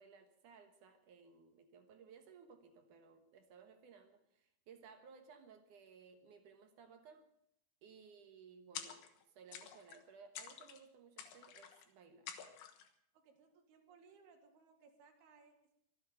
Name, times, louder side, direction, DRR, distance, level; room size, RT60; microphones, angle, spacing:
voice 1, 0.0-7.3 7.8-9.0 9.3-12.3, right 5 dB, 65° right, 7 dB, 2.5 m, -60 dB
sound 1, 8.8-9.2 9.5-10.0 10.4-10.8 11.2-11.9 12.3-12.9, left 9 dB, 85° left, 3.4 m, -49 dB
voice 2, 13.1-15.7, right 5 dB, 90° right, 3 dB, 3.9 m, -65 dB
24.5 x 8.7 x 6.8 m, 0.74 s
omnidirectional pair, 4.4 m